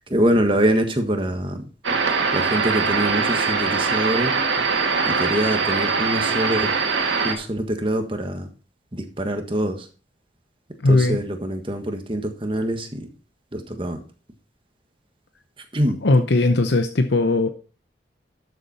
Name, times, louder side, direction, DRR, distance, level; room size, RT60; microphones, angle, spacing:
voice 1, 0.1-1.6 2.3-4.3 5.0-6.7 7.2-8.5 8.9-9.9 10.9-13.1 13.5-14.0 15.7-16.0, right 1 dB, 25° right, 6 dB, 1.4 m, -24 dB
sound 1, 1.8-7.3, right 4 dB, 85° right, 2.0 m, -22 dB
voice 2, 10.8-11.2 16.0-17.5, left 2 dB, 70° left, 7 dB, 0.8 m, -18 dB
12.5 x 7.1 x 4.2 m, 0.38 s
head